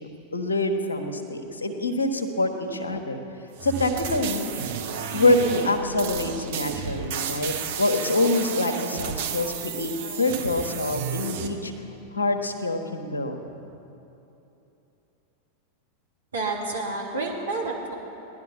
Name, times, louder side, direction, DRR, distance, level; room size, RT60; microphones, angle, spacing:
voice 1, 0.3-3.2 3.6-4.5 5.1-9.9 10.2-11.7 12.1-13.4, left 2 dB, 75° left, 5 dB, 1.3 m, -25 dB
sound 1, 3.6-11.5, right 7 dB, 55° right, 1.1 m, -32 dB
voice 2, 16.3-17.9, right 3 dB, 70° right, -3 dB, 2.7 m, -29 dB
17.5 x 11.5 x 5.7 m, 2.9 s
figure-of-eight pair, 90°, 0 cm